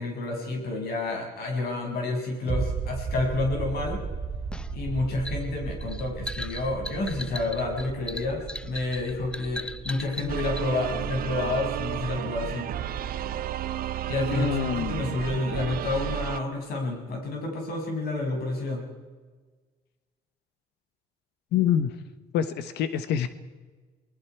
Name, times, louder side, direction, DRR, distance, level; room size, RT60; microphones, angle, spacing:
voice 1, 0.0-4.0 4.7-12.7 14.1-18.8, left 2 dB, 65° left, 1 dB, 6.5 m, -29 dB
sound 1, 2.5-13.8 14.1-14.2, right 5 dB, 35° right, 3.8 m, -36 dB
sound 2, 4.5-10.7, left 1 dB, 5° left, 0.7 m, -38 dB
sound 3, 10.3-16.4, right 11 dB, 60° right, 1.0 m, -32 dB
voice 2, 14.3-15.2 21.5-22.0 22.3-23.3, left 9 dB, 80° left, 12 dB, 1.2 m, -26 dB
28.0 x 20.5 x 4.7 m, 1.4 s
cardioid pair, 110°, 17 cm